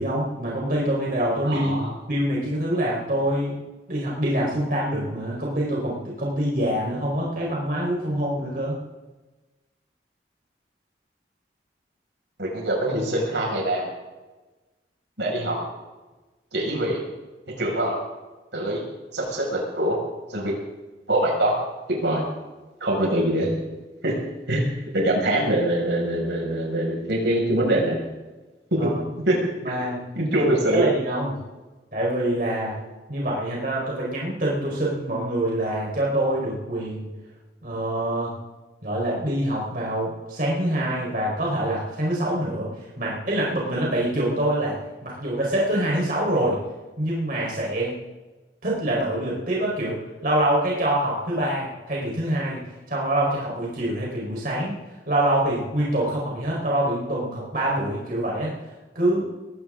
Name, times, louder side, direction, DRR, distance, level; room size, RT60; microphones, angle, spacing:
voice 1, 0.0-1.8 2.1-3.5 3.9-8.8 28.8-28.9 29.6-30.0 30.3-30.4 30.7-31.4 31.9-32.8 33.1-37.1 37.6-38.3 38.8-46.6 47.0-48.0 48.6-52.6 52.9-54.8 55.1-58.5 58.9-59.2, right 1 dB, 50° right, -4 dB, 4.5 m, -25 dB
voice 2, 1.4-1.9 12.4-13.8 15.2-15.6 16.5-17.0 17.6-17.9 18.5-18.8 19.1-20.0 20.3-20.6 21.1-21.5 22.0-22.2 22.8-23.5 24.0-24.1 24.5-24.6 24.9-28.0 29.3-29.4 29.7-29.8 30.2-30.9, right 1 dB, 80° right, -1 dB, 6.2 m, -23 dB
21.5 x 17.0 x 3.8 m, 1.2 s
head